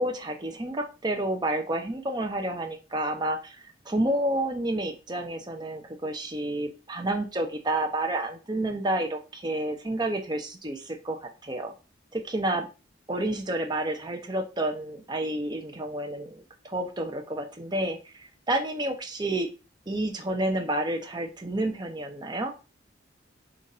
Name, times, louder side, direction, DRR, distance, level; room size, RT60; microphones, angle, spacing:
voice 1, 0.0-3.6 3.9-11.7 12.1-12.7 13.1-19.5 19.9-22.5, right 1 dB, 25° right, 3 dB, 0.7 m, -30 dB
3.9 x 2.5 x 4.1 m, 0.31 s
head